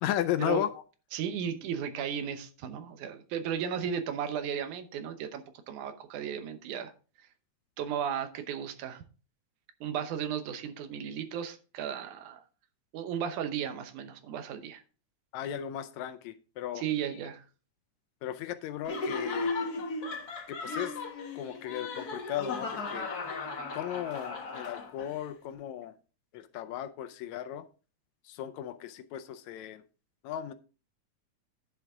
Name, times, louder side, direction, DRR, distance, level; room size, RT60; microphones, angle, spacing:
voice 1, 0.0-0.8 15.3-16.8 17.1-17.2 18.2-19.5 20.5-21.0 21.4-23.1 23.7-25.9 26.3-27.7 28.3-29.8 30.2-30.5, left 11 dB, 80° left, 11 dB, 1.9 m, -35 dB
voice 2, 1.1-6.9 7.8-9.0 9.8-12.4 12.9-14.8 16.8-17.4, right 8 dB, 85° right, 9 dB, 2.4 m, -35 dB
Laughter, 18.8-25.2, left 3 dB, 45° left, 1.4 m, -36 dB
10.5 x 6.8 x 3.6 m, 0.35 s
omnidirectional pair, 3.4 m